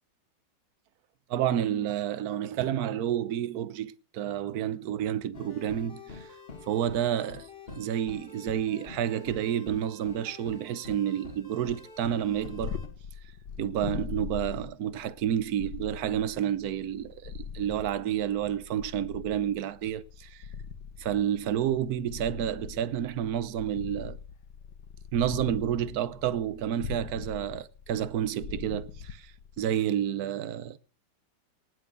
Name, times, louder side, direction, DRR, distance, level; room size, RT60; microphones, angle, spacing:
voice 1, 1.3-6.3 6.7-12.8 13.6-20.5 21.0-24.2 25.1-29.3 29.6-30.8, right 10 dB, 65° right, 1.3 m, -30 dB
sound 1, 5.3-12.9, left 4 dB, 35° left, 2.2 m, -46 dB
Purr, 12.3-29.8, left 7 dB, 75° left, 1.7 m, -41 dB
19.0 x 8.2 x 6.8 m
omnidirectional pair, 1.9 m